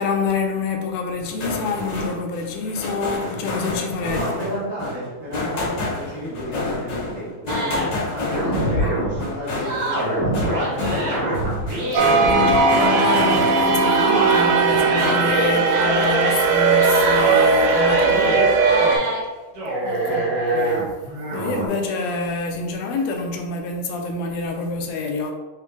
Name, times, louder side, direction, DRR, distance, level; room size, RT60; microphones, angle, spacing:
voice 1, 0.0-4.2 8.4-9.0 12.2-18.3 19.8-20.9 21.3-25.3, left 4 dB, 80° left, 3 dB, 1.5 m, -27 dB
sound 1, 1.2-13.9 14.3-15.5, left 2 dB, 60° left, 2.1 m, -29 dB
voice 2, 4.0-11.4 11.8-12.9 18.1-18.4 18.7-19.0 20.0-20.2, equal, 35° right, -13 dB, 1.4 m, -33 dB
sound 2, 7.5-9.3 9.6-13.4 13.8-16.4 16.7-19.2 19.5-21.7, right 1 dB, 60° right, 1.9 m, -25 dB
sound 3, 11.9-19.0, right 4 dB, 90° right, 2.1 m, -18 dB
4.7 x 3.2 x 3.3 m, 1.2 s
omnidirectional pair, 3.5 m